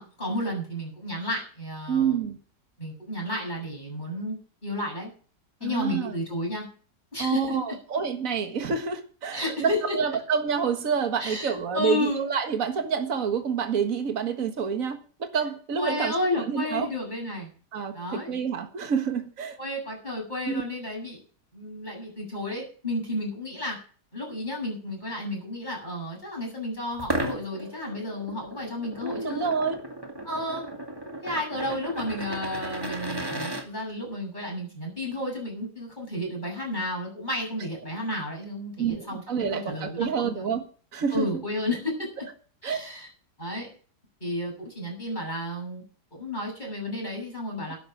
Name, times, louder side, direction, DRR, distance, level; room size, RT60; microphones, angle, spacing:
voice 1, 0.0-2.2 2.8-4.4 4.6-5.1 5.6-6.7 7.1-7.6 9.3-10.0 11.2-12.3 15.8-17.5 17.9-18.3 19.6-21.2 21.5-23.8 24.1-29.5 30.2-30.6 31.2-40.4 41.1-42.2 42.6-43.1 43.4-43.7 44.2-45.8 46.1-47.8, left 1 dB, 25° left, 7.7 m, -32 dB
voice 2, 1.9-2.4 5.6-6.1 7.2-16.9 17.7-19.6 20.5-20.6 29.0-29.8 38.8-40.6 40.9-41.3 42.6-42.8, right 6 dB, 55° right, 2.0 m, -28 dB
sound 1, 27.0-33.6, right 1 dB, 15° right, 2.0 m, -35 dB
12.0 x 10.5 x 6.2 m
omnidirectional pair, 1.8 m